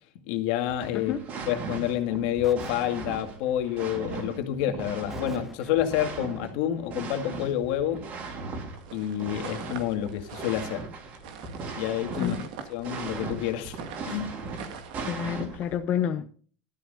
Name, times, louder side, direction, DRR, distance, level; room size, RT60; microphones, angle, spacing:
voice 1, 0.3-1.1 1.5-8.1 8.9-10.9 11.8-12.4 12.7-13.8 14.1-14.3, left 11 dB, 70° left, 2.0 m, -28 dB
sound 1, 0.7-15.8, right 4 dB, 45° right, 3.9 m, -38 dB
sound 2, 2.4-3.7 5.1-6.2, equal, 5° right, 2.0 m, -46 dB
sound 3, 8.8-15.4, right 7 dB, 80° right, 2.1 m, -44 dB
voice 2, 15.1-16.3, left 9 dB, 40° left, 0.8 m, -28 dB
13.0 x 11.5 x 2.7 m
supercardioid pair, 130°, 4 cm